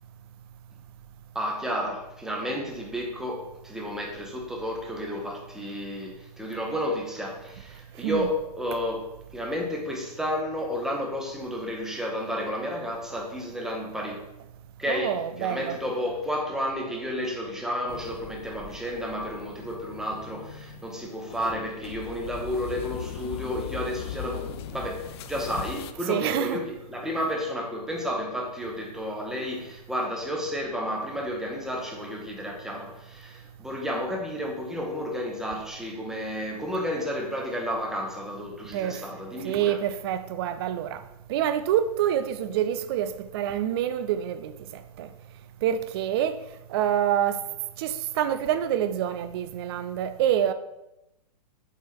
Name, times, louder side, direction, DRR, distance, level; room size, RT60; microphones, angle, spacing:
voice 1, 1.3-14.2 14.8-39.8, equal, ahead, 1.0 m, -32 dB
voice 2, 8.0-8.3 14.9-15.8 26.1-26.6 38.7-39.0 39.4-41.0 41.3-45.1 45.6-46.4 46.7-47.4 47.8-50.5, right 10 dB, 40° right, 0.4 m, -27 dB
sound 1, 17.9-25.9, left 9 dB, 40° left, 0.4 m, -40 dB
8.1 x 4.2 x 3.6 m
hypercardioid pair, 140°, 21 cm